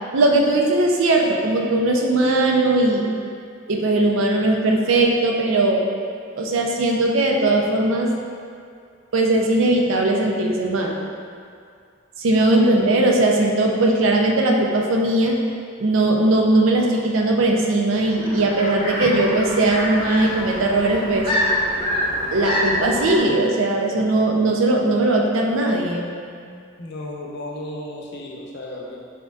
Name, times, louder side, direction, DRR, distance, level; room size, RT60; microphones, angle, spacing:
voice 1, 0.1-3.1 3.7-5.8 6.4-8.1 9.1-11.0 12.2-15.4 15.8-21.3 22.3-26.0, right 2 dB, 80° right, 0 dB, 0.5 m, -19 dB
sound 1, 17.9-23.2, equal, 25° right, 1.3 m, -26 dB
voice 2, 26.4-29.0, left 1 dB, 55° left, -2 dB, 0.6 m, -34 dB
6.2 x 2.9 x 2.4 m, 2.3 s
head